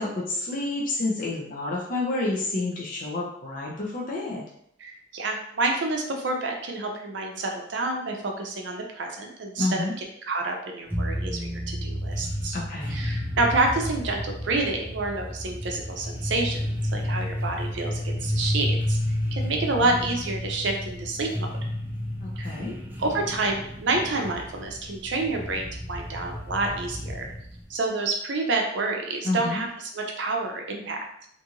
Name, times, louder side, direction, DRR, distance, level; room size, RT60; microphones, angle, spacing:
voice 1, 0.0-4.4 9.6-9.9 12.5-13.0 22.2-22.8 29.2-29.6, left 2 dB, 45° left, -4 dB, 0.5 m, -29 dB
voice 2, 4.8-9.9 10.2-12.6 12.9-19.0 19.3-21.5 22.4-22.6 23.0-27.3 27.7-31.0, right 2 dB, 60° right, 2 dB, 0.5 m, -28 dB
sound 1, 10.9-27.7, equal, 10° right, 0.4 m, -31 dB
2.6 x 2.4 x 2.9 m, 0.71 s
head